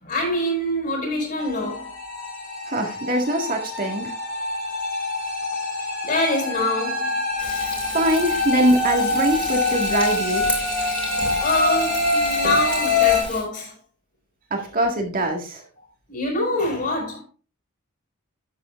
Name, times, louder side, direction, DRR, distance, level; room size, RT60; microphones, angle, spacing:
voice 1, 0.0-2.0 4.1-4.2 5.8-7.2 11.0-11.1 11.4-13.8 16.1-17.2, left 1 dB, 40° left, 5.5 m, -25 dB
sound 1, 1.4-13.2, left 3 dB, 75° left, 4.7 m, -25 dB
voice 2, 2.7-4.1 7.6-10.5 14.5-15.6, right 1 dB, 40° right, 1.8 m, -23 dB
Frying (food), 7.4-13.4, left 1 dB, 5° left, 2.7 m, -33 dB
11.5 x 8.2 x 2.5 m
head